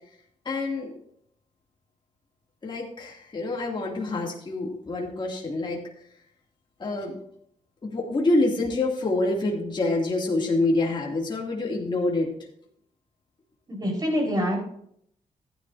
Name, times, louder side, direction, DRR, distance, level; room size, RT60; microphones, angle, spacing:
voice 1, 0.4-0.9 2.6-5.8 6.8-7.2 7.8-12.3, left 2 dB, 35° left, -2 dB, 2.7 m, -26 dB
voice 2, 13.7-14.6, equal, 30° right, -1 dB, 4.7 m, -25 dB
15.0 x 10.5 x 2.7 m, 0.69 s
cardioid pair, 100°, 14 cm